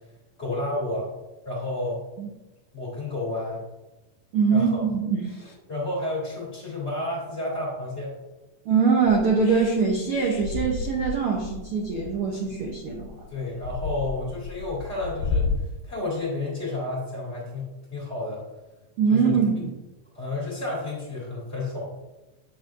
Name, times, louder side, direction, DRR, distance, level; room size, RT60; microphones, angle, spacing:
voice 1, 0.4-1.1 1.4-2.0 2.7-3.6 4.5-4.8 5.7-8.1 13.3-15.5 15.8-18.4 19.1-19.4 20.1-21.9, left 2 dB, 20° left, -5 dB, 2.2 m, -31 dB
voice 2, 4.3-5.4 8.7-13.1 19.0-19.7, right 5 dB, 80° right, -1 dB, 1.2 m, -23 dB
sound 1, 9.1-15.6, left 4 dB, 80° left, 2.1 m, -32 dB
9.0 x 7.3 x 2.5 m, 1.0 s
omnidirectional pair, 3.7 m